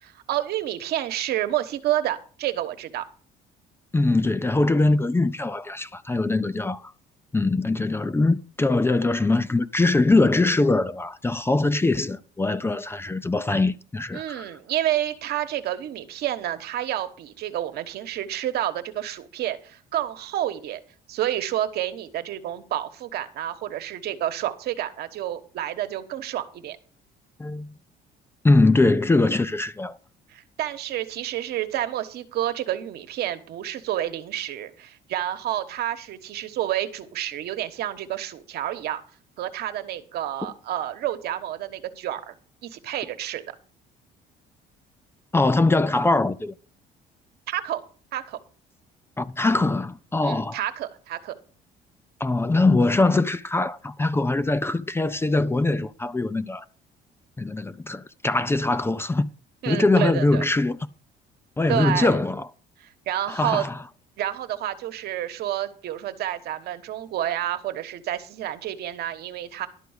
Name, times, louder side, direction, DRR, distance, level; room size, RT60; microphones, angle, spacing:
voice 1, 0.0-3.1 14.1-20.8 21.1-26.8 30.3-39.0 39.4-42.3 42.6-43.4 47.5-47.8 48.1-48.4 50.2-51.3 59.6-60.4 61.7-62.2 62.8-63.7 64.2-69.7, right 12 dB, 70° right, 1.2 m, -29 dB
voice 2, 3.9-6.9 7.3-14.5 27.4-27.7 28.4-30.0 45.3-46.5 49.2-50.6 52.2-56.6 57.4-59.3 59.7-60.8 61.6-62.5 63.3-63.8, left 2 dB, 15° left, 0.5 m, -22 dB
12.0 x 4.6 x 8.0 m
cardioid pair, 110°, 17 cm